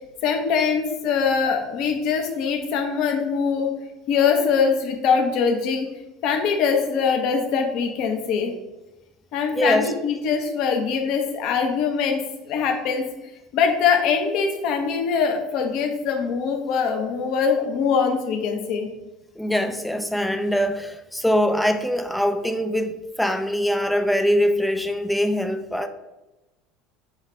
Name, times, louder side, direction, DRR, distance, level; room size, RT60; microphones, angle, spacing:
voice 1, 0.2-3.7 4.1-5.9 6.2-8.5 9.3-12.2 12.5-13.0 13.5-18.9, left 6 dB, 55° left, 0.7 m, -22 dB
voice 2, 9.5-9.9 19.4-25.9, equal, 5° left, 0.5 m, -23 dB
6.4 x 2.4 x 3.2 m
hypercardioid pair, 70°, 0 cm